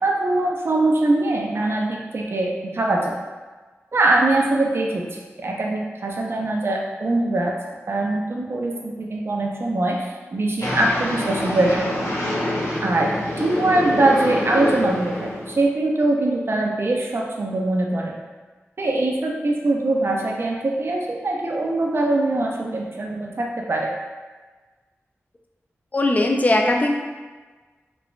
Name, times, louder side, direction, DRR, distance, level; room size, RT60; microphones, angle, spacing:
voice 1, 0.0-3.1 3.9-7.5 7.9-11.7 12.0-12.1 12.8-13.1 13.4-18.1 18.8-23.9, right 2 dB, 55° right, -1 dB, 0.4 m, -22 dB
sound 1, 10.6-15.6, left 1 dB, 75° left, 0.6 m, -26 dB
voice 2, 25.9-26.9, left 2 dB, 30° left, 1 dB, 0.3 m, -19 dB
3.0 x 2.1 x 2.4 m, 1.3 s
wide cardioid pair, 60°, 5 cm